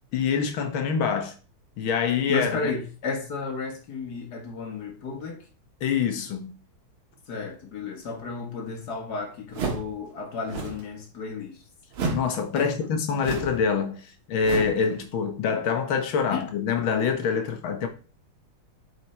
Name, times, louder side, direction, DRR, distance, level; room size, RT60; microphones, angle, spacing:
voice 1, 0.1-1.3 1.8-2.7 5.8-6.6 12.1-17.9, left 6 dB, 70° left, 1.9 m, -25 dB
voice 2, 2.3-5.4 7.3-11.6 12.6-12.7 15.4-15.6 16.3-16.5, left 4 dB, 50° left, 1.9 m, -33 dB
sound 1, 9.5-10.0 10.4-10.9 11.9-12.3 13.2-13.6 14.4-14.8, right 4 dB, 70° right, 2.3 m, -30 dB
8.1 x 4.5 x 4.3 m
omnidirectional pair, 2.4 m